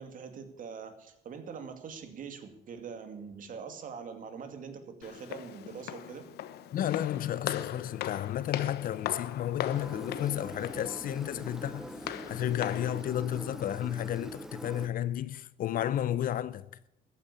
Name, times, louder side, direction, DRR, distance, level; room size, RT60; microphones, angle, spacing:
voice 1, 0.0-6.3, right 6 dB, 50° right, 2.5 m, -43 dB
Walk footsteps, 5.0-13.0, left 11 dB, 75° left, 1.1 m, -40 dB
voice 2, 6.7-11.9 12.3-16.7, left 11 dB, 55° left, 0.7 m, -32 dB
Engine, 9.7-14.9, right 1 dB, 5° right, 0.9 m, -43 dB
14.5 x 9.6 x 8.4 m
cardioid pair, 110°, 17 cm